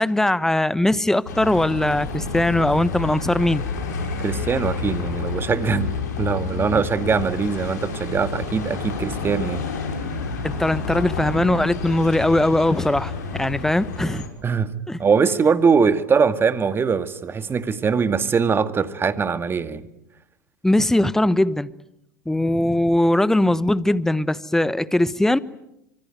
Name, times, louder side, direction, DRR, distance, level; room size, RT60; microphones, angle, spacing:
voice 1, 0.0-3.6 6.7-6.8 10.4-14.2 14.9-15.0 20.6-21.7 22.3-25.4, left 1 dB, 5° left, 1.1 m, -20 dB
Bus, 1.3-14.3, left 4 dB, 75° left, 5.6 m, -29 dB
voice 2, 4.2-9.6 14.4-14.7 15.0-19.9, right 5 dB, 25° right, 2.0 m, -22 dB
25.5 x 24.5 x 9.3 m
hypercardioid pair, 90°, 9 cm